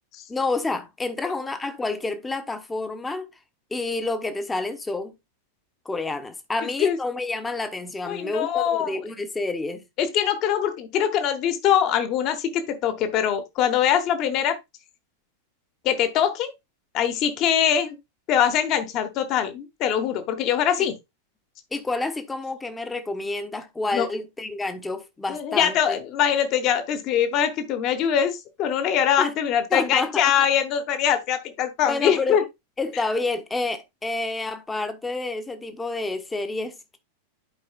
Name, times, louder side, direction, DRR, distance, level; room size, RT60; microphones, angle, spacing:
voice 1, 0.3-3.3 3.7-5.1 5.8-9.8 20.8-20.9 21.7-26.0 29.2-29.3 29.7-30.2 31.9-32.4 32.8-37.0, left 3 dB, 10° left, 0.9 m, -29 dB
voice 2, 8.0-9.0 10.0-14.6 15.8-16.5 16.9-18.0 18.3-20.9 23.9-24.1 25.3-32.4, left 9 dB, 40° left, 1.2 m, -23 dB
11.5 x 4.7 x 2.4 m
figure-of-eight pair, 90°, 0 cm